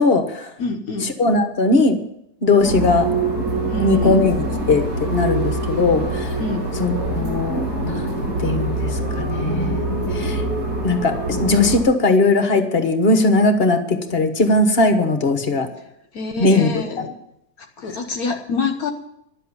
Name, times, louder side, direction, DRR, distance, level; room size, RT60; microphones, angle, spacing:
voice 1, 0.0-0.5 1.0-2.0 2.4-3.1 3.8-6.4 6.7-8.0 8.4-9.8 10.1-10.4 10.8-15.7 16.4-17.1, left 2 dB, 40° left, 7 dB, 1.5 m, -19 dB
voice 2, 0.6-1.1 3.7-4.2 6.4-6.7 16.1-17.1 17.8-18.9, left 4 dB, 65° left, 6 dB, 1.5 m, -26 dB
sound 1, 2.6-11.8, right 2 dB, 85° right, 7.0 m, -24 dB
11.5 x 7.7 x 9.8 m, 0.77 s
omnidirectional pair, 1.7 m